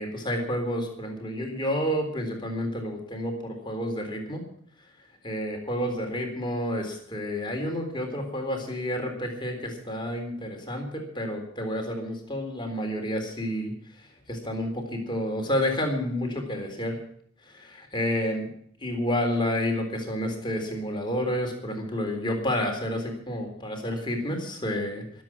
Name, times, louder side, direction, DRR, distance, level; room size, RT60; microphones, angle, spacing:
voice 1, 0.0-4.4 5.2-13.7 14.3-17.0 17.5-18.5 18.8-25.2, equal, 20° left, 3 dB, 3.8 m, -30 dB
23.5 x 8.4 x 6.0 m, 0.65 s
head